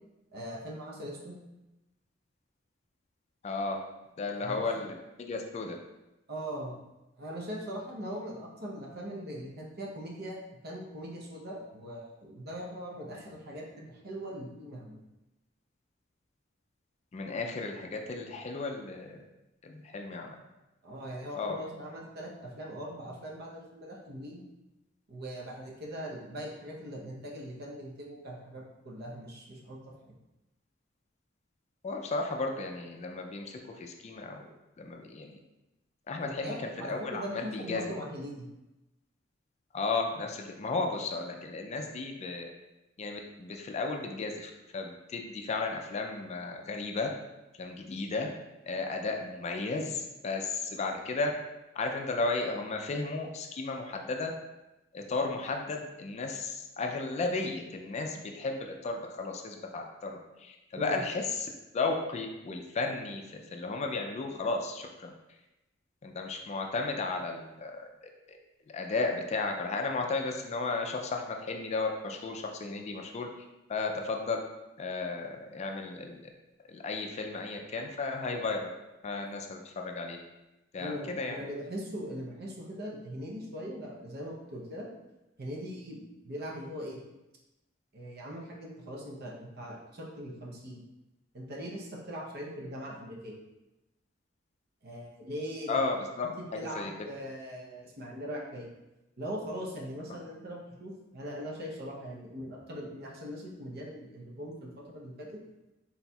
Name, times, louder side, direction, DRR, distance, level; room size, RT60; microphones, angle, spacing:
voice 1, 0.3-1.4 4.3-4.8 6.3-6.8 7.2-10.4 10.6-15.0 20.8-24.4 25.1-29.8 36.2-38.5 60.8-61.0 80.8-84.9 85.4-87.0 87.9-90.8 91.3-93.4 94.8-95.8 96.2-98.7 99.2-105.3, equal, 55° right, -2 dB, 0.8 m, -40 dB
voice 2, 3.4-3.8 4.2-5.8 17.1-19.2 19.6-20.4 21.3-21.6 31.8-34.5 34.8-35.4 36.1-37.8 39.7-42.5 43.0-47.1 47.6-48.3 48.7-51.3 51.8-54.3 54.9-61.5 61.7-65.1 66.0-67.8 68.3-68.4 68.7-73.3 73.7-74.4 74.8-76.2 76.7-78.7 79.0-80.2 80.7-81.4 95.7-96.3 96.5-96.9, left 3 dB, 35° left, 3 dB, 0.4 m, -34 dB
4.2 x 4.0 x 2.3 m, 0.99 s
head